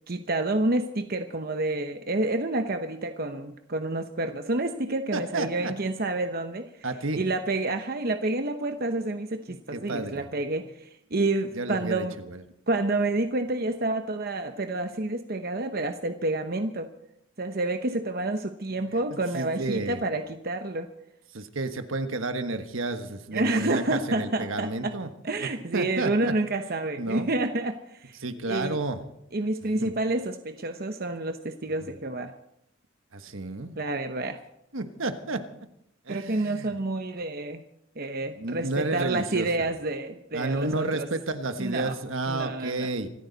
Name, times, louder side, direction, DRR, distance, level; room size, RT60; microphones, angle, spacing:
voice 1, 0.1-6.9 7.1-12.2 12.7-16.9 17.4-20.9 23.3-24.9 25.2-28.2 28.5-28.8 29.3-32.3 33.8-34.4 36.1-37.6 38.0-41.1 41.6-42.0 42.3-42.9, right 2 dB, 45° right, 7 dB, 0.9 m, -29 dB
voice 2, 5.1-5.7 6.8-7.2 9.5-10.3 11.5-12.4 19.3-20.0 21.3-25.1 25.4-26.3 27.0-27.3 28.2-29.0 29.8-29.9 33.1-33.8 34.7-35.4 36.1-36.7 38.4-39.5 40.3-43.1, right 2 dB, 75° right, 8 dB, 1.4 m, -31 dB
25.5 x 13.5 x 4.1 m, 0.78 s
head